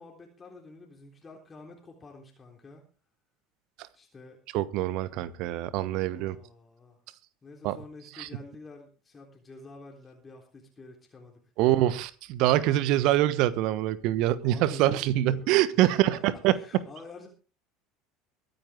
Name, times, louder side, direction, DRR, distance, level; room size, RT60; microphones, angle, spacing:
voice 1, 0.0-2.8 3.9-4.4 5.7-7.0 7.4-11.7 14.4-17.3, left 3 dB, 25° left, 3.6 m, -48 dB
voice 2, 4.5-6.4 7.6-7.8 8.2-8.3 11.6-16.8, right 14 dB, 60° right, 1.2 m, -25 dB
23.0 x 9.7 x 3.6 m
figure-of-eight pair, 70°, 0 cm